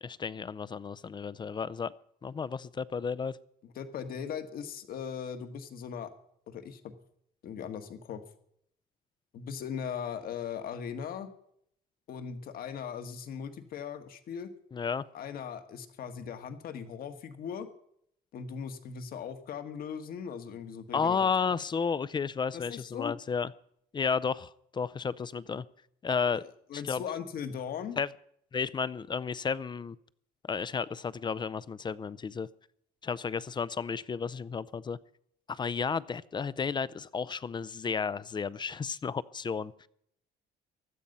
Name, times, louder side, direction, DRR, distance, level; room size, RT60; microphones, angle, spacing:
voice 1, 0.0-1.9 2.2-3.4 14.7-15.0 20.9-23.5 23.9-25.6 26.0-26.4 26.7-27.0 28.0-28.1 28.5-30.0 30.5-32.5 33.0-35.0 35.5-39.7, left 5 dB, 25° left, 19 dB, 0.5 m, -32 dB
voice 2, 3.6-6.1 6.5-6.9 7.4-8.2 9.3-11.3 12.1-14.5 15.1-17.7 18.3-21.3 22.5-23.2 26.7-28.0, left 7 dB, 60° left, 8 dB, 1.7 m, -39 dB
16.0 x 12.0 x 5.5 m, 0.70 s
cardioid pair, 110°, 17 cm